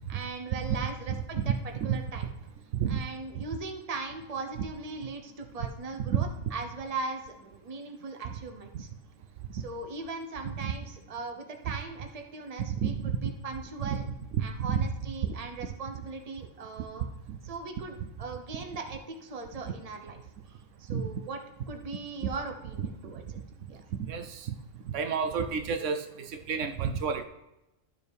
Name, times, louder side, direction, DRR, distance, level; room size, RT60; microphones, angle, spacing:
voice 1, 0.1-1.5 1.8-2.3 2.9-8.9 9.5-14.1 14.4-17.0 17.4-20.2 20.5-21.4 21.7-23.2 23.7-23.8, right 3 dB, 35° right, 4 dB, 0.9 m, -39 dB
voice 2, 1.4-2.0 2.7-3.0 3.4-3.5 6.1-6.2 8.3-8.4 10.6-10.7 12.6-13.3 13.8-14.0 14.4-14.9 15.3-15.4 17.3-17.4 20.9-21.1 24.0-24.5 24.9-27.2, right 7 dB, 75° right, 7 dB, 0.9 m, -30 dB
12.5 x 6.7 x 3.4 m, 0.94 s
omnidirectional pair, 1.3 m